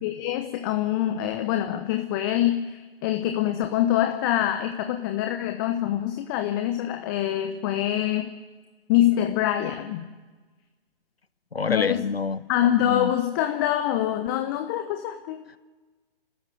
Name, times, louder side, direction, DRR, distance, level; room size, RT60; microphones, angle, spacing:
voice 1, 0.0-8.3 8.9-10.1 11.7-12.0 12.5-15.5, left 12 dB, 20° left, 7 dB, 0.9 m, -25 dB
voice 2, 11.5-12.4 12.8-13.1, left 4 dB, 75° left, 16 dB, 1.1 m, -26 dB
29.5 x 13.5 x 9.2 m, 1.3 s
figure-of-eight pair, 130°, 30 cm